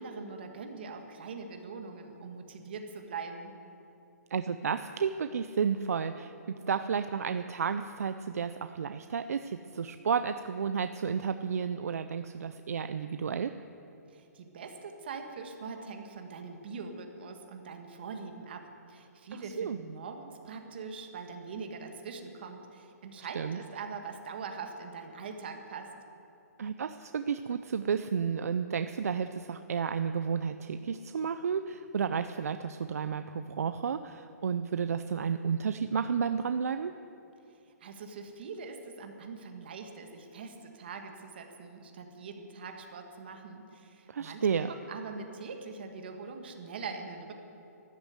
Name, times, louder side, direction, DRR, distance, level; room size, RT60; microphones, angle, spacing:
voice 1, 0.0-3.5 14.1-25.9 37.8-47.3, right 4 dB, 35° right, 4 dB, 1.5 m, -43 dB
voice 2, 4.3-13.5 19.3-19.8 23.4-23.6 26.6-36.9 44.1-44.7, right 6 dB, 60° right, 10 dB, 0.5 m, -32 dB
13.0 x 11.5 x 8.0 m, 2.8 s
hypercardioid pair, 180°, 9 cm